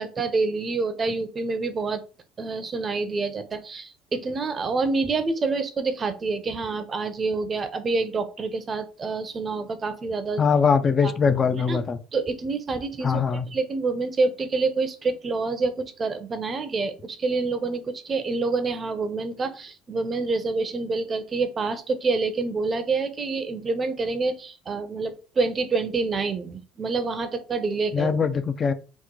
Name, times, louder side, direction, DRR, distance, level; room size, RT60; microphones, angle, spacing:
voice 1, 0.0-2.0 2.4-10.4 11.0-11.1 11.6-11.8 12.1-28.1, right 3 dB, 35° right, 0.5 m, -27 dB
voice 2, 10.4-12.0 13.0-13.5 27.9-28.7, left 6 dB, 35° left, 0.3 m, -22 dB
3.0 x 2.0 x 3.6 m
supercardioid pair, 80°, 0 cm